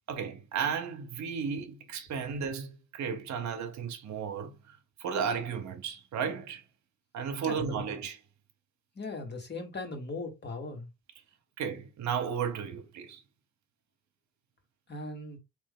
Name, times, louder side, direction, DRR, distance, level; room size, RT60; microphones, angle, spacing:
voice 1, 0.1-4.5 5.0-6.6 7.1-8.2 11.6-13.2, right 7 dB, 70° right, 1.0 m, -34 dB
voice 2, 7.4-8.0 8.9-10.9 14.9-15.4, left 3 dB, 35° left, 1.6 m, -38 dB
3.5 x 2.9 x 3.6 m
cardioid pair, 90°, 30 cm